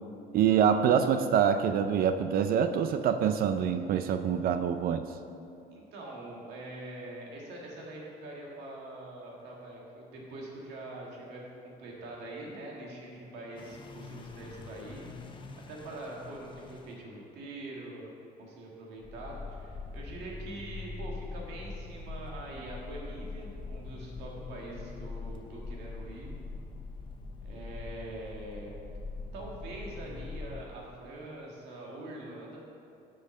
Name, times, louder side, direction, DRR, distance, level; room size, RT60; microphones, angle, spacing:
voice 1, 0.3-5.1, right 8 dB, 60° right, 9 dB, 0.4 m, -25 dB
voice 2, 5.7-15.1 15.7-18.1 18.4-26.3 27.4-28.7 29.3-32.6, right 1 dB, 85° right, -2 dB, 1.8 m, -44 dB
sound 1, 13.6-17.0 19.0-30.6, left 3 dB, 30° left, 0.7 m, -43 dB
6.6 x 5.6 x 6.3 m, 2.5 s
cardioid pair, 110°, 17 cm